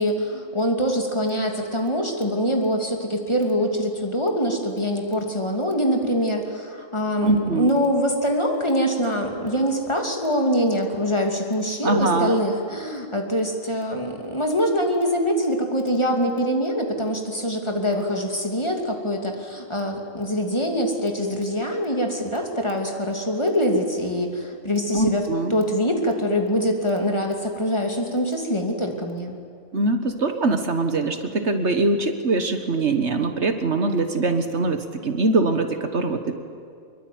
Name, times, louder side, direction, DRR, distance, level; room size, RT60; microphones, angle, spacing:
voice 1, 0.0-25.2 25.5-29.4, equal, 20° left, 2 dB, 2.7 m, -24 dB
voice 2, 7.2-7.7 11.8-12.4 24.9-25.6 29.7-36.4, right 3 dB, 60° right, 7 dB, 1.7 m, -22 dB
25.0 x 22.5 x 9.5 m, 2.3 s
omnidirectional pair, 1.3 m